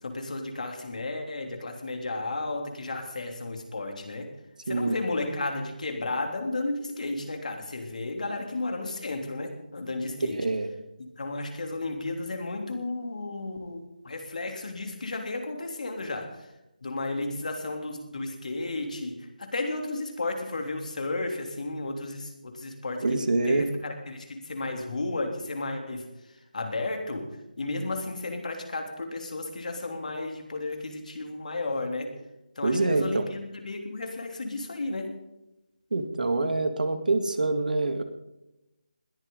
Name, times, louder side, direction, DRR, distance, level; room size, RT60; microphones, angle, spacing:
voice 1, 0.0-4.3 4.7-10.5 11.0-16.5 16.8-23.2 23.5-32.1 32.5-35.1, left 2 dB, 60° left, 3 dB, 3.1 m, -33 dB
voice 2, 4.7-5.0 10.4-10.7 23.0-23.7 32.6-33.3 35.9-38.0, right 2 dB, 70° right, 7 dB, 2.0 m, -25 dB
21.0 x 14.0 x 3.9 m, 0.95 s
figure-of-eight pair, 160°, 5 cm